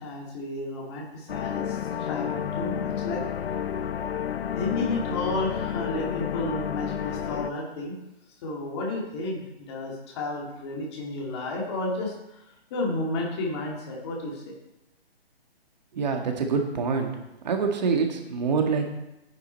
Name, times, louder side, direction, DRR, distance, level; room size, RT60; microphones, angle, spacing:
voice 1, 0.0-3.2 4.5-8.0 8.4-14.5, left 2 dB, 25° left, -2 dB, 2.2 m, -32 dB
sound 1, 1.3-7.5, left 9 dB, 65° left, 0.6 m, -30 dB
voice 2, 15.9-17.1 17.4-18.9, right 5 dB, 40° right, 3 dB, 1.9 m, -25 dB
11.0 x 9.9 x 4.5 m, 0.92 s
hypercardioid pair, 160°, 32 cm